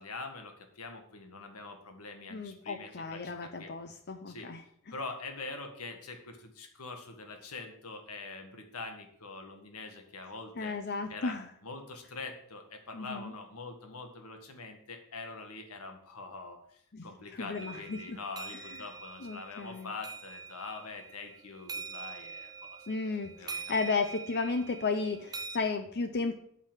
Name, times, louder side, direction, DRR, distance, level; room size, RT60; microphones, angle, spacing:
voice 1, 0.0-3.7 4.3-4.5 4.9-10.7 11.1-11.3 11.6-22.9 23.4-23.8, left 3 dB, 80° left, 5 dB, 1.8 m, -44 dB
voice 2, 2.3-4.6 10.6-11.5 12.9-13.3 16.9-17.1 17.3-18.2 19.2-19.9 22.9-26.3, left 4 dB, 50° left, 7 dB, 0.7 m, -34 dB
sound 1, 17.6-25.6, right 5 dB, 15° right, 0.5 m, -44 dB
8.4 x 5.7 x 7.4 m, 0.67 s
head